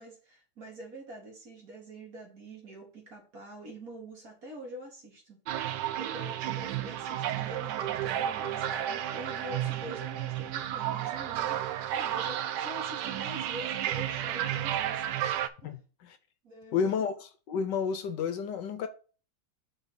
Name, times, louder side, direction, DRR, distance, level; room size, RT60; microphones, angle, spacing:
voice 1, 0.0-11.6 11.9-15.2 15.6-15.8 16.4-16.9, right 1 dB, 45° right, 2.4 m, -45 dB
sound 1, 5.5-15.5, right 11 dB, 70° right, 1.1 m, -32 dB
voice 2, 15.6-16.2 16.7-18.9, left 6 dB, 70° left, 1.2 m, -31 dB
5.8 x 4.0 x 5.8 m
omnidirectional pair, 2.2 m